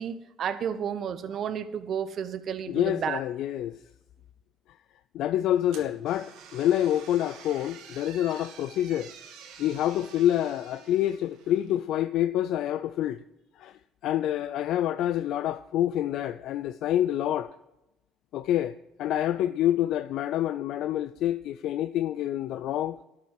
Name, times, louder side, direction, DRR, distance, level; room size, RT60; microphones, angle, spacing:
voice 1, 0.0-3.2, right 8 dB, 55° right, 0.8 m, -32 dB
voice 2, 2.7-3.8 5.1-9.1 9.6-13.2 13.6-17.5 18.3-23.0, left 12 dB, 70° left, 0.4 m, -27 dB
sound 1, 5.7-11.8, right 7 dB, 80° right, 1.7 m, -49 dB
12.0 x 6.1 x 7.5 m
supercardioid pair, 95°, 0 cm